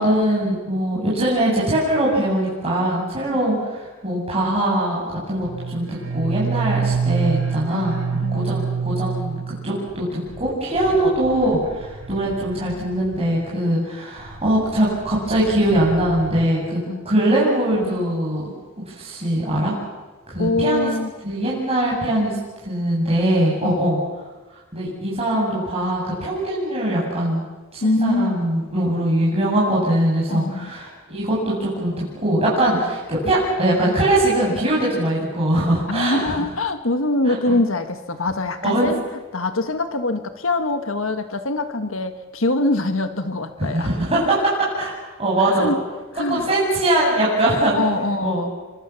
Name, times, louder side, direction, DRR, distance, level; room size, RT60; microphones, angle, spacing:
voice 1, 0.0-5.0 5.3-16.8 17.0-18.4 18.9-19.7 20.3-20.9 21.2-22.3 22.6-24.0 24.7-27.4 27.7-36.4 37.2-37.6 38.6-38.9 43.7-44.9 45.2-45.7 46.3-47.7 48.2-48.5, right 1 dB, 30° right, -6 dB, 7.9 m, -21 dB
sound 1, 5.4-13.5 14.2-16.5, right 5 dB, 80° right, 2.1 m, -28 dB
voice 2, 7.7-8.7 16.9-17.0 20.4-21.1 23.6-23.9 27.8-28.4 30.3-30.7 35.9-39.0 39.3-43.9 45.4-45.8 46.1-46.5 47.7-48.5, left 2 dB, 70° left, 8 dB, 1.7 m, -24 dB
28.0 x 25.0 x 7.3 m, 1.2 s
head